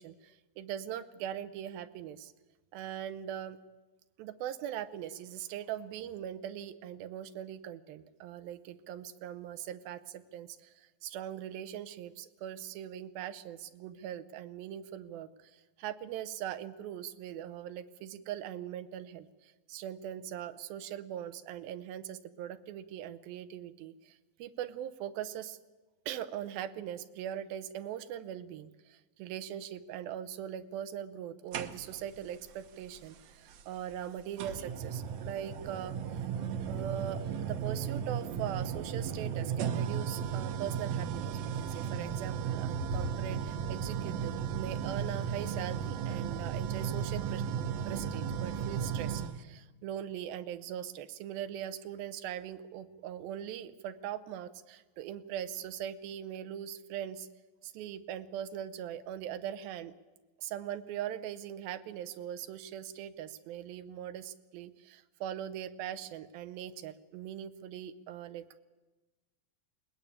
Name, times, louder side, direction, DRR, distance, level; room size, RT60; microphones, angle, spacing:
voice 1, 0.0-2.3 2.7-3.6 4.2-25.6 26.1-36.2 36.7-47.4 47.9-57.3 57.6-59.9 60.4-68.6, right 10 dB, 85° right, 12 dB, 2.7 m, -41 dB
sound 1, 31.5-32.2 33.5-33.6 34.4-49.4, right 7 dB, 70° right, 1.5 m, -35 dB
21.0 x 19.0 x 8.5 m, 1.2 s
omnidirectional pair, 4.1 m